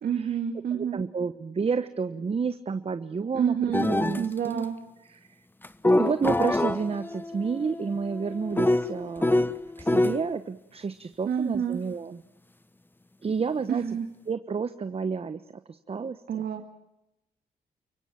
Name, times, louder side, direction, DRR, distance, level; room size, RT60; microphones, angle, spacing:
voice 1, 0.0-1.0 3.3-3.9 4.2-4.8 11.2-11.8 13.7-14.1 16.3-16.7, right 8 dB, 70° right, 4 dB, 2.3 m, -28 dB
voice 2, 0.7-4.7 5.1-5.4 5.9-12.2 13.2-13.8 14.3-16.2, right 5 dB, 40° right, 11 dB, 1.1 m, -30 dB
sound 1, 3.7-4.3 5.6-10.2, left 2 dB, 15° left, 1.2 m, -26 dB
29.5 x 16.5 x 8.8 m, 0.92 s
cardioid pair, 75°, 16 cm